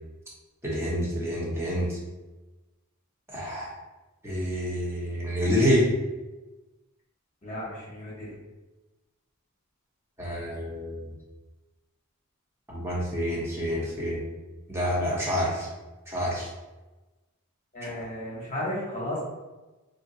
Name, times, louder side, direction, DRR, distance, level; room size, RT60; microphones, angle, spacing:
voice 1, 0.6-2.0 3.3-3.7 4.2-5.9 10.2-11.1 12.7-14.2 14.7-15.7 16.1-16.5 17.8-17.9, equal, 10° right, -5 dB, 0.8 m, -27 dB
voice 2, 7.4-8.3 17.7-19.2, left 1 dB, 35° left, -7 dB, 0.9 m, -34 dB
2.6 x 2.1 x 3.7 m, 1.1 s
head